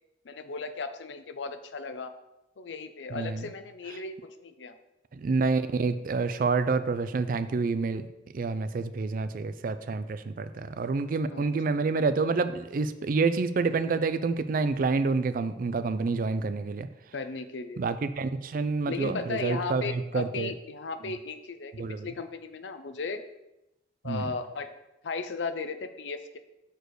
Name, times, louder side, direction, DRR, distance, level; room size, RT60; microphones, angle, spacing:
voice 1, 0.2-2.1 2.6-4.7 11.3-11.5 17.1-17.8 18.9-21.7 22.0-23.2 24.0-24.7 25.0-26.4, left 4 dB, 85° left, 9 dB, 0.6 m, -36 dB
voice 2, 3.1-3.4 5.1-8.1 8.3-16.9 17.8-20.5 21.8-22.1 24.0-24.3, right 4 dB, 50° right, 12 dB, 0.4 m, -28 dB
6.6 x 4.5 x 4.6 m, 0.93 s
head